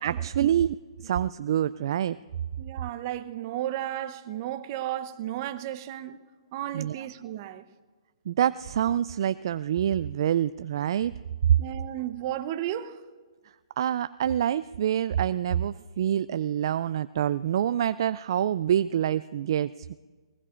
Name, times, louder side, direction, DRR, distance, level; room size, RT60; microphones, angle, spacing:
voice 1, 0.0-2.2 6.7-7.1 8.3-11.1 13.8-19.9, right 10 dB, 55° right, 0.3 m, -26 dB
voice 2, 2.6-6.2 6.5-7.6 11.6-13.0, right 12 dB, 40° right, 0.8 m, -33 dB
20.5 x 20.0 x 2.5 m
hypercardioid pair, 135°, 3 cm